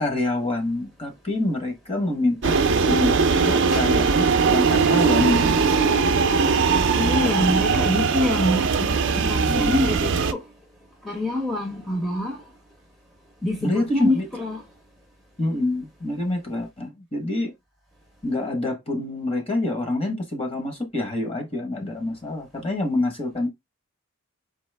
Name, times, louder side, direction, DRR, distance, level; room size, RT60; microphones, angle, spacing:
voice 1, 0.0-2.6 2.8-5.7 7.2-7.8 9.3-9.9 13.6-14.3 15.4-17.5 18.2-23.5, left 2 dB, 25° left, 1.1 m, -26 dB
sound 1, 2.4-10.3, right 5 dB, 55° right, 0.5 m, -20 dB
voice 2, 7.0-10.4 11.0-12.4 13.4-14.6, left 1 dB, ahead, 0.7 m, -25 dB
4.6 x 2.9 x 3.4 m
head